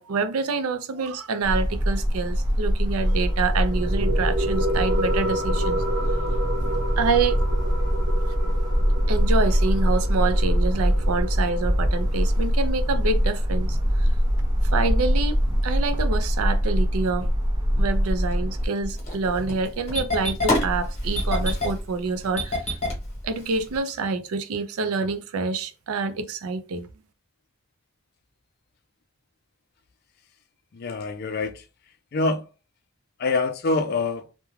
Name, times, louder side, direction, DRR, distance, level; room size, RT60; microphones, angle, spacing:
voice 1, 0.0-5.8 6.6-6.7 7.0-7.4 9.1-14.1 14.7-17.3 17.8-22.6 23.2-26.9, right 4 dB, 85° right, 0.4 m, -27 dB
sound 1, 1.4-18.7, equal, 20° right, 0.4 m, -23 dB
sound 2, 3.0-14.0, right 1 dB, 65° right, 0.9 m, -31 dB
Engine starting, 18.8-23.8, left 1 dB, 30° left, 0.9 m, -27 dB
voice 2, 30.7-31.6 32.1-32.4 33.2-34.3, left 3 dB, 45° left, 0.4 m, -25 dB
2.3 x 2.1 x 3.1 m
head